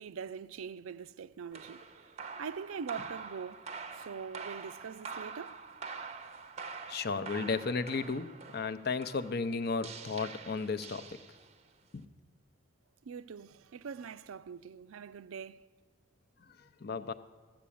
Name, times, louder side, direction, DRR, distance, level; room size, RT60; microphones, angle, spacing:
voice 1, 0.0-1.8 2.4-3.6 3.9-5.6 13.0-15.7, right 6 dB, 85° right, 0.4 m, -43 dB
sound 1, 1.5-11.7, right 5 dB, 30° right, 0.6 m, -45 dB
voice 2, 6.9-11.0 11.9-12.1 16.8-17.1, left 4 dB, 50° left, 0.6 m, -34 dB
14.0 x 7.4 x 8.5 m
head